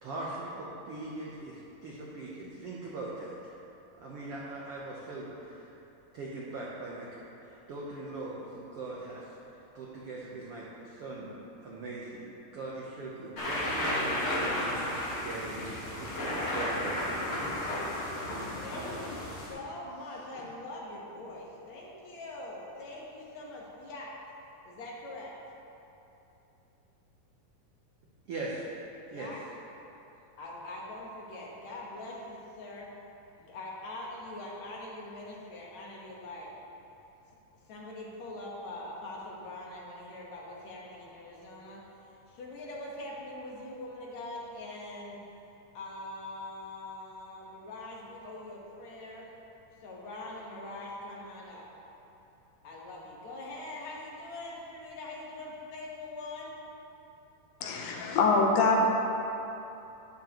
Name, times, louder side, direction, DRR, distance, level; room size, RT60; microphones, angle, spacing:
voice 1, 0.0-3.3 4.0-5.7 6.1-9.3 9.7-11.4 11.6-17.1 28.3-28.6 29.1-29.3, right 2 dB, 80° right, -5 dB, 1.3 m, -41 dB
sound 1, 13.4-19.5, left 1 dB, 30° left, 2.7 m, -33 dB
voice 2, 18.6-24.1 24.6-25.3 29.0-29.4 30.4-32.9 33.4-36.5 37.7-41.8 42.3-45.2 45.7-49.3 49.8-51.7 52.6-56.5, left 2 dB, 60° left, -4 dB, 2.3 m, -43 dB
voice 3, 57.6-58.9, left 3 dB, 80° left, 1 dB, 2.5 m, -24 dB
12.0 x 9.6 x 3.0 m, 2.9 s
omnidirectional pair, 4.0 m